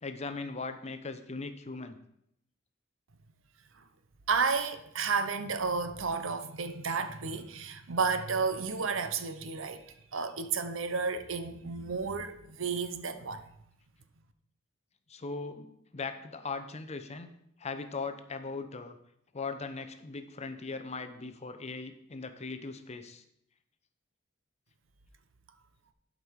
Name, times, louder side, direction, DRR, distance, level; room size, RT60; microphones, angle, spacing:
voice 1, 0.0-2.0 15.1-15.7 15.9-17.3 17.6-19.0 19.3-23.2, left 4 dB, 35° left, 0.7 m, -39 dB
voice 2, 4.3-13.5, right 5 dB, 70° right, 0.8 m, -32 dB
11.5 x 5.3 x 4.6 m
head